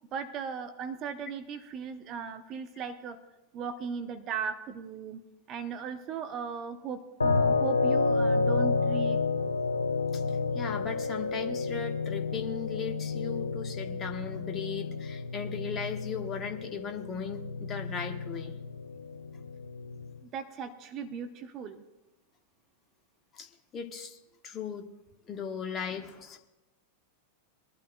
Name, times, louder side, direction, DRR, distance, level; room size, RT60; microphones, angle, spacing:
voice 1, 0.1-3.2 3.5-5.2 5.5-9.2 20.2-21.8, right 6 dB, 35° right, 9 dB, 0.8 m, -37 dB
sound 1, 7.2-20.2, left 4 dB, 80° left, 0.6 m, -30 dB
voice 2, 10.1-18.5 23.3-23.5 23.7-24.2 24.4-24.9 25.3-26.4, left 6 dB, 25° left, 5 dB, 1.3 m, -37 dB
22.0 x 12.0 x 2.3 m, 1.0 s
figure-of-eight pair, 90°, 0 cm